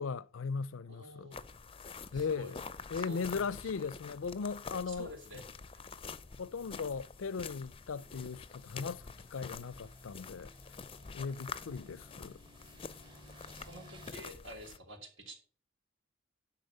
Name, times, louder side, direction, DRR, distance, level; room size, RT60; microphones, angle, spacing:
voice 1, 0.0-1.3 2.1-2.6 2.9-5.1 6.4-10.5 11.1-12.4, left 5 dB, 85° left, 0.5 m, -38 dB
voice 2, 0.9-1.4 2.1-2.5 3.0-3.9 4.9-5.4 13.6-15.3, equal, 75° right, 3.5 m, -49 dB
sound 1, 1.3-14.8, left 5 dB, 30° left, 0.5 m, -47 dB
sound 2, 1.3-14.1, equal, 25° right, 1.3 m, -60 dB
12.0 x 4.1 x 7.9 m
head